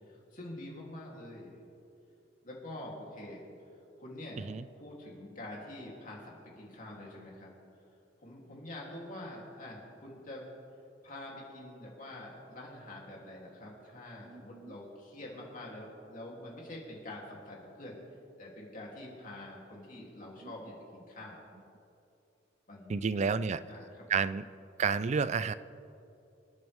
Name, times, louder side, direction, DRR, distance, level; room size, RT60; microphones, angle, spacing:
voice 1, 0.1-1.6 2.4-3.5 4.0-4.5 4.8-7.5 8.2-10.5 11.0-18.0 18.4-21.4 22.7-23.0 23.3-23.4 23.7-24.0, left 1 dB, 45° left, -3 dB, 3.0 m, -46 dB
voice 2, 14.3-14.7 20.0-20.1 20.4-20.5 22.9-23.6 24.1-24.5 24.8-25.5, right 5 dB, 40° right, 15 dB, 0.4 m, -31 dB
27.0 x 9.3 x 3.5 m, 2.7 s
head